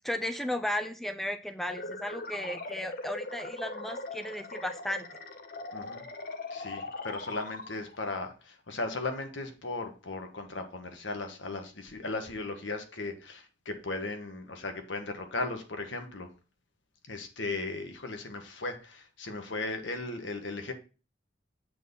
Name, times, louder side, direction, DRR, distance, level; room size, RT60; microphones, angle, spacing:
voice 1, 0.0-5.1, left 1 dB, ahead, 8 dB, 0.4 m, -34 dB
sound 1, 1.6-8.1, left 2 dB, 50° left, 0.7 m, -40 dB
voice 2, 5.7-6.1 6.5-16.3 17.1-20.7, left 2 dB, 85° left, 5 dB, 1.3 m, -37 dB
7.6 x 4.1 x 5.4 m, 0.35 s
head